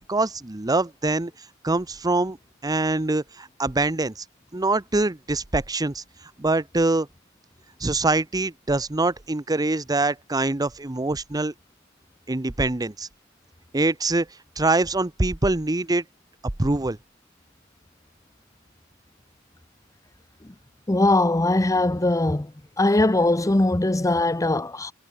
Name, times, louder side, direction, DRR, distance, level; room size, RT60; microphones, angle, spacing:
voice 1, 0.1-2.4 2.6-4.2 4.5-6.0 6.4-7.1 7.8-11.5 12.3-13.1 13.7-14.3 14.6-16.0 16.6-17.0, right 2 dB, 20° right, 0.8 m, -24 dB
voice 2, 20.9-22.5 22.8-24.9, left 2 dB, 15° left, 0.7 m, -21 dB
head